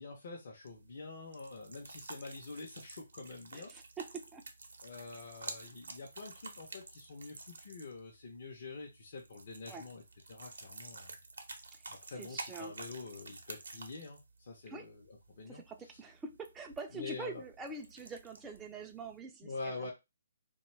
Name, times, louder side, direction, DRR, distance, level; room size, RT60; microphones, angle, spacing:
voice 1, 0.0-3.7 4.8-10.0 10.3-11.1 11.9-15.6 16.9-17.4 19.4-19.9, left 3 dB, 55° left, -1 dB, 0.6 m, -46 dB
sound 1, 0.6-19.2, right 3 dB, 80° right, 0.7 m, -50 dB
voice 2, 3.5-4.4 9.7-9.9 11.7-12.7 14.7-14.9 15.5-19.9, right 3 dB, 10° right, 3 dB, 0.3 m, -45 dB
2.6 x 2.2 x 3.1 m, 0.23 s
hypercardioid pair, 150°, 0 cm